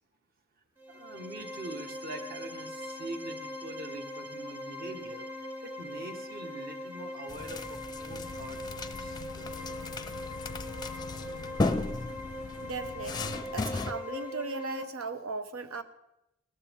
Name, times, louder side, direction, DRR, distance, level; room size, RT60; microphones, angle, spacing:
sound 1, 0.8-14.8, left 1 dB, 10° right, 1.0 m, -41 dB
voice 1, 0.9-5.3 5.6-9.5, right 2 dB, 45° right, 5 dB, 1.4 m, -44 dB
sound 2, 7.3-13.9, left 3 dB, 20° left, 0.5 m, -36 dB
Boat Water vehicle / Engine, 8.1-13.4, left 6 dB, 90° left, 0.4 m, -48 dB
voice 2, 12.6-15.8, right 3 dB, 90° right, 11 dB, 1.0 m, -37 dB
18.0 x 14.0 x 3.6 m, 0.88 s
head